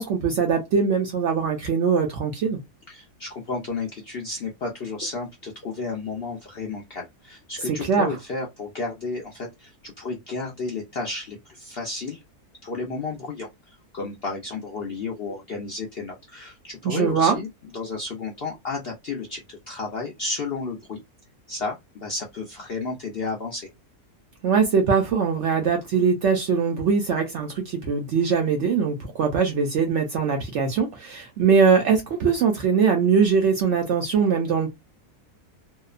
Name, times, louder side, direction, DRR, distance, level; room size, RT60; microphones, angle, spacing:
voice 1, 0.0-2.6 7.8-8.1 16.8-17.4 24.4-34.7, right 6 dB, 65° right, 0.7 m, -21 dB
voice 2, 2.9-12.2 12.6-17.5 17.7-21.0 21.5-23.7, left 3 dB, 65° left, 0.6 m, -32 dB
2.8 x 2.0 x 2.4 m
omnidirectional pair, 1.6 m